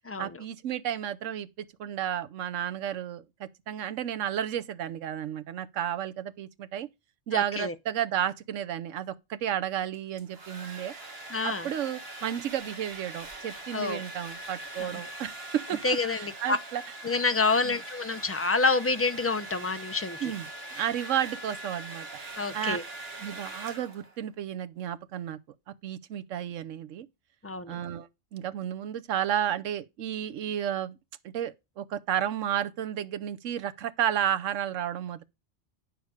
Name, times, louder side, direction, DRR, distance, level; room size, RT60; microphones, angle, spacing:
voice 1, 0.2-1.5 1.8-6.9 7.3-10.9 11.4-16.8 17.6-17.8 20.2-20.5 20.7-22.1 22.5-22.8 23.2-25.4 25.8-27.1 27.7-31.0 31.2-35.2, right 10 dB, 90° right, 1.1 m, -32 dB
voice 2, 7.3-7.7 11.3-11.7 13.7-14.0 14.8-15.0 15.8-16.6 17.0-20.3 22.4-22.8 27.4-27.8, left 3 dB, 15° left, 0.5 m, -28 dB
Domestic sounds home sounds, 9.9-24.2, right 1 dB, 55° right, 1.8 m, -42 dB
9.4 x 6.5 x 4.8 m
omnidirectional pair, 1.3 m